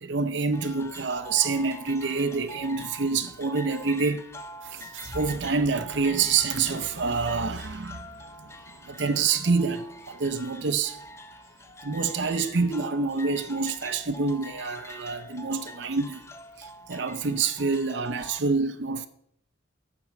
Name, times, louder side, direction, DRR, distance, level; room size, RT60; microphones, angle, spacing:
voice 1, 0.0-4.2 4.7-8.5 8.8-11.0 11.8-16.2 16.6-19.1, right 4 dB, 60° right, 0.6 m, -27 dB
sound 1, 0.5-18.4, equal, 15° left, 0.6 m, -44 dB
sound 2, 4.6-7.8, right 3 dB, 85° right, 1.2 m, -45 dB
11.0 x 5.9 x 7.6 m
head